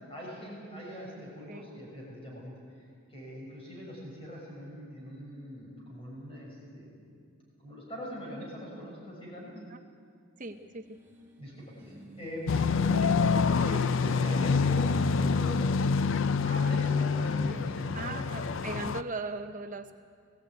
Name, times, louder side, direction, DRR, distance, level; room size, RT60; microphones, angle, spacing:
voice 1, 0.1-2.5 3.1-7.0 7.6-9.5 11.4-15.7 16.4-18.5, equal, 25° left, -3 dB, 6.4 m, -41 dB
voice 2, 10.4-11.0 17.5-17.7 17.9-20.0, right 3 dB, 35° right, 7 dB, 0.8 m, -38 dB
sound 1, 10.5-13.7, right 1 dB, 10° right, 2.3 m, -52 dB
sound 2, 12.5-19.0, left 5 dB, 60° left, 0.4 m, -26 dB
20.5 x 15.5 x 9.3 m, 2.2 s
head